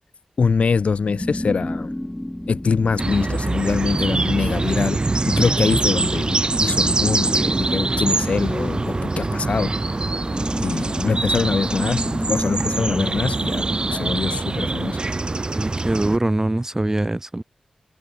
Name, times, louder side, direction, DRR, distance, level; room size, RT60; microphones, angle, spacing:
voice 1, 0.4-1.9 2.5-10.0 10.6-15.0, left 5 dB, 70° left, 0.7 m, -24 dB
sound 1, 1.0-13.0, left 1 dB, 10° left, 1.2 m, -32 dB
sound 2, 3.0-16.2, right 3 dB, 45° right, 2.5 m, -23 dB
voice 2, 15.5-17.4, right 1 dB, 25° right, 1.3 m, -23 dB
cardioid pair, 50°, 2 cm